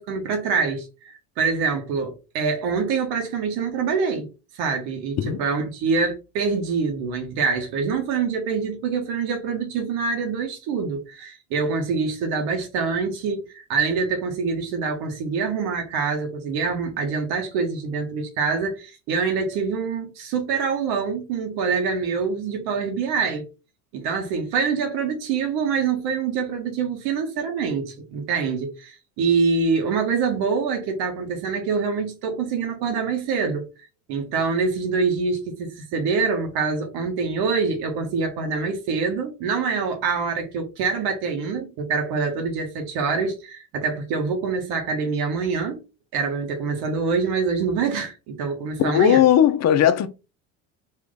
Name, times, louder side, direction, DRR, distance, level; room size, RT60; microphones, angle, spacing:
voice 1, 0.0-4.3 4.5-23.5 23.9-33.7 34.1-45.8 46.1-49.2, right 5 dB, 65° right, 1.5 m, -25 dB
voice 2, 48.8-50.1, left 10 dB, 40° left, 0.8 m, -17 dB
3.3 x 3.2 x 3.9 m
supercardioid pair, 85°, 40 cm